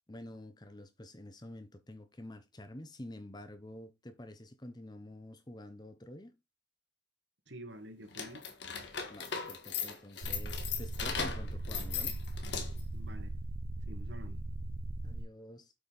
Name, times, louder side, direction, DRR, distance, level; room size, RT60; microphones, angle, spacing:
voice 1, 0.1-6.4 9.1-12.2 15.0-15.7, left 1 dB, 20° left, 0.9 m, -48 dB
voice 2, 7.5-8.5 12.9-13.4 13.9-14.4, right 1 dB, 75° right, 1.9 m, -49 dB
sound 1, 8.1-12.9, left 6 dB, 70° left, 1.9 m, -38 dB
sound 2, 10.2-15.2, right 1 dB, 50° right, 0.5 m, -39 dB
8.2 x 5.5 x 4.1 m
head